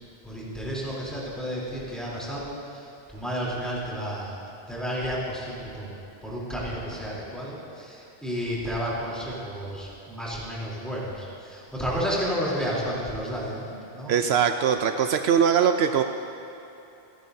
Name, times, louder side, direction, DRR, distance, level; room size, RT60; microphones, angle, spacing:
voice 1, 0.2-4.4 4.7-6.0 6.2-14.2, equal, ahead, -7 dB, 3.3 m, -32 dB
voice 2, 14.1-16.0, right 7 dB, 75° right, 7 dB, 0.8 m, -21 dB
28.5 x 10.0 x 2.7 m, 2.9 s
omnidirectional pair, 1.1 m